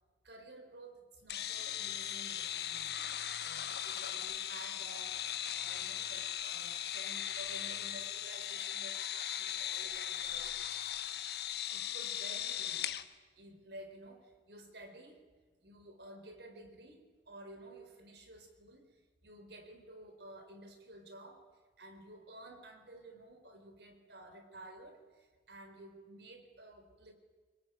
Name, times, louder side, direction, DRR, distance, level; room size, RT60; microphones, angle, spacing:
voice 1, 0.2-3.1 3.4-10.6 11.7-13.0 13.4-15.2 15.6-18.9 19.2-21.4 21.8-27.1, right 1 dB, 70° right, 6 dB, 4.1 m, -53 dB
sound 1, 1.3-13.0, left 10 dB, 60° left, 1.3 m, -38 dB
25.0 x 21.5 x 9.3 m, 1.4 s
head